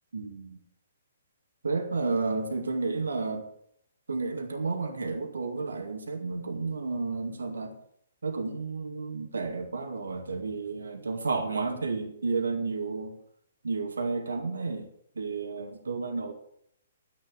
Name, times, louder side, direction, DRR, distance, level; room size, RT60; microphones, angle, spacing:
voice 1, 0.1-0.6 1.6-3.5 4.1-7.7 8.2-13.2 13.6-14.9 15.2-16.3, right 4 dB, 80° right, 5 dB, 2.2 m, -31 dB
12.0 x 10.5 x 6.5 m, 0.68 s
figure-of-eight pair, 125°, 0 cm